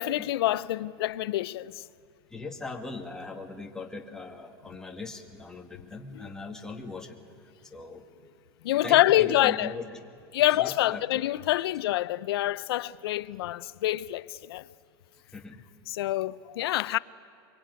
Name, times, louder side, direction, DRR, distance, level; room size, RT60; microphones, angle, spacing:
voice 1, 0.0-1.8 6.1-6.3 8.6-9.7 10.3-14.6 15.9-17.0, left 15 dB, 75° left, 0.6 m, -26 dB
voice 2, 2.3-8.1 8.8-9.8 10.6-11.2 15.3-15.6, left 3 dB, 5° left, 2.0 m, -40 dB
23.5 x 23.0 x 9.5 m
supercardioid pair, 130°, 13 cm